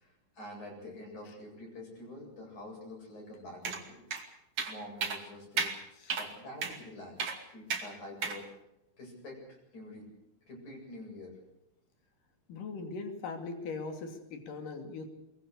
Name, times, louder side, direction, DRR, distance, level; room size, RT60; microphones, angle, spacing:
voice 1, 0.0-4.0 4.7-5.7 6.2-7.2 7.5-8.5 9.0-10.1 10.4-11.4, left 1 dB, 65° left, 0 dB, 9.6 m, -47 dB
sound 1, 3.6-3.8 4.1-4.2 4.6-4.7 5.0-5.2 5.6-5.7 6.1-6.3 6.6-6.8 7.2-7.4 7.7-7.8 8.2-8.4, right 5 dB, 50° right, 3.4 m, -33 dB
voice 2, 12.5-15.1, left 4 dB, 85° left, 6 dB, 4.3 m, -40 dB
23.0 x 22.0 x 6.6 m, 0.86 s
omnidirectional pair, 3.7 m